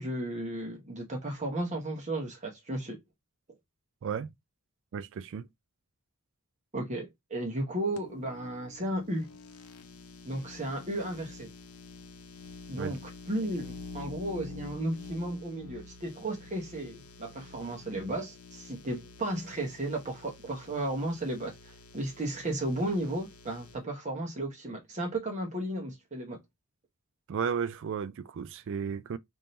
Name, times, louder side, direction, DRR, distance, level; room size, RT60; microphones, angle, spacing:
voice 1, 0.0-3.0 6.7-9.3 10.2-11.5 12.7-26.4, right 1 dB, 30° right, 1.0 m, -34 dB
voice 2, 4.0-4.3 4.9-5.5 12.8-12.9 27.3-29.2, right 6 dB, 60° right, 0.3 m, -34 dB
sound 1, 8.0-23.8, left 3 dB, 75° left, 0.7 m, -48 dB
3.6 x 2.7 x 4.2 m
head